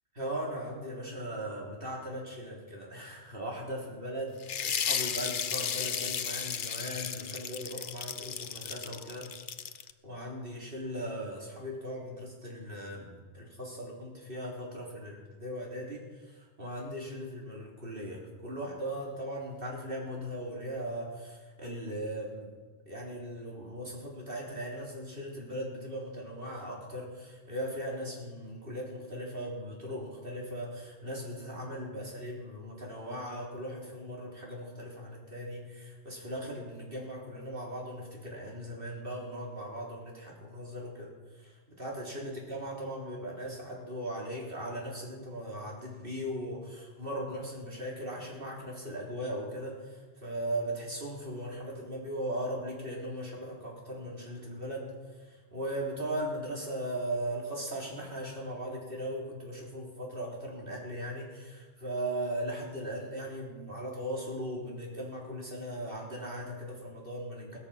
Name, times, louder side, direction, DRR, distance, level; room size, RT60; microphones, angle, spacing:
voice 1, 0.1-9.3 10.0-22.5 22.9-54.9 55.2-67.6, equal, 55° right, -2 dB, 4.0 m, -38 dB
sound 1, 4.4-9.9, left 7 dB, 55° left, 0.8 m, -34 dB
18.0 x 13.5 x 5.8 m, 1.4 s
omnidirectional pair, 1.1 m